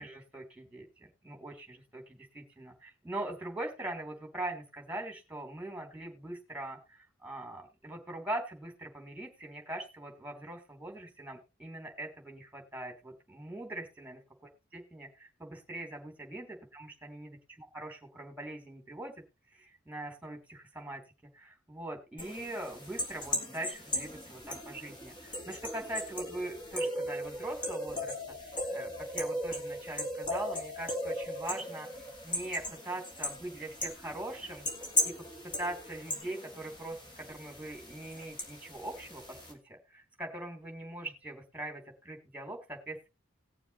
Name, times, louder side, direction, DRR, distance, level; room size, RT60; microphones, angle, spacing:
voice 1, 0.0-14.2 14.7-19.1 19.5-21.0 21.3-28.1 28.4-31.9 32.2-34.7 35.0-35.1 35.4-43.1, right 1 dB, 5° right, 3 dB, 3.0 m, -42 dB
sound 1, 22.2-39.5, left 1 dB, 25° left, 2.8 m, -37 dB
19.0 x 7.1 x 2.9 m, 0.27 s
head